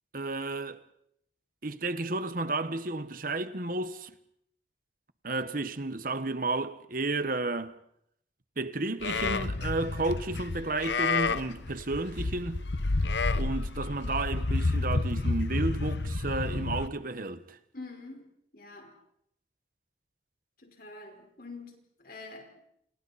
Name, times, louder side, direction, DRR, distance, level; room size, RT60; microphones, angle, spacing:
voice 1, 0.1-0.8 1.6-4.1 5.2-7.8 8.6-12.6 13.3-17.6, right 2 dB, 50° right, 1.4 m, -32 dB
Livestock farm animals working animals, 9.0-16.9, left 3 dB, 75° left, 1.0 m, -30 dB
voice 2, 17.7-18.3 18.5-18.9 20.6-22.6, left 3 dB, 55° left, 4.8 m, -46 dB
29.5 x 29.5 x 4.3 m
head